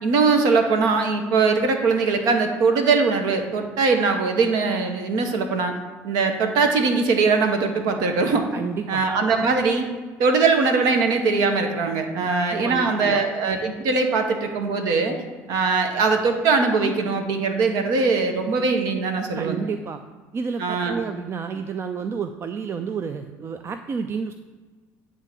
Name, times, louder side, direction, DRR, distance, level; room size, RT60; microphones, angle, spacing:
voice 1, 0.0-5.8 6.0-8.5 8.9-9.9 10.2-15.2 15.5-19.7 20.6-21.0, right 4 dB, 70° right, 5 dB, 1.2 m, -21 dB
voice 2, 8.5-9.1 12.2-13.2 19.3-20.0 20.3-24.3, right 6 dB, 40° right, 8 dB, 0.5 m, -30 dB
8.8 x 3.7 x 6.8 m, 1.4 s
supercardioid pair, 80°, 7 cm